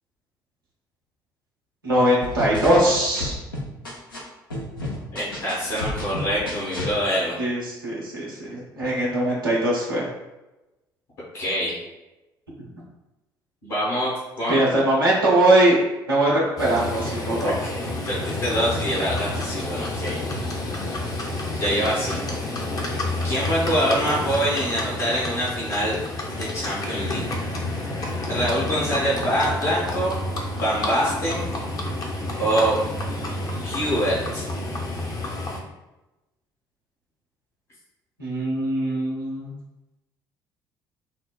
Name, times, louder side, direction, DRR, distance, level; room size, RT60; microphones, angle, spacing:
voice 1, 1.8-3.4 7.4-10.1 12.6-12.7 14.5-15.8 16.1-17.7 38.2-39.5, right 1 dB, 90° right, -6 dB, 0.6 m, -21 dB
sound 1, 2.2-4.2 4.5-6.9, left 1 dB, 85° left, 0.5 m, -31 dB
voice 2, 5.1-7.4 11.3-11.7 13.6-14.1 14.4-14.6 17.4-20.2 21.5-22.4 22.8-26.0 26.3-27.2 27.8-27.9 28.2-30.2 30.5-31.5 32.4-32.8 33.6-34.4, equal, 65° left, -9 dB, 1.1 m, -25 dB
Livestock farm animals working animals, 16.6-35.6, left 2 dB, 35° left, 0.6 m, -29 dB
3.8 x 2.1 x 2.2 m, 1.0 s
figure-of-eight pair, 50°, 11 cm